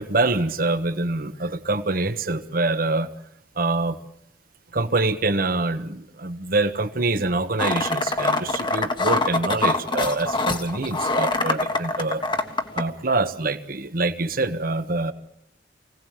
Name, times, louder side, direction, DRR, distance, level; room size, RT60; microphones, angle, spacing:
voice 1, 0.0-3.1 3.6-4.0 4.7-12.2 12.7-15.1, right 2 dB, 55° right, 10 dB, 1.4 m, -25 dB
sound 1, 7.6-12.8, left 2 dB, 25° left, 1.5 m, -24 dB
24.5 x 17.5 x 7.5 m, 0.76 s
head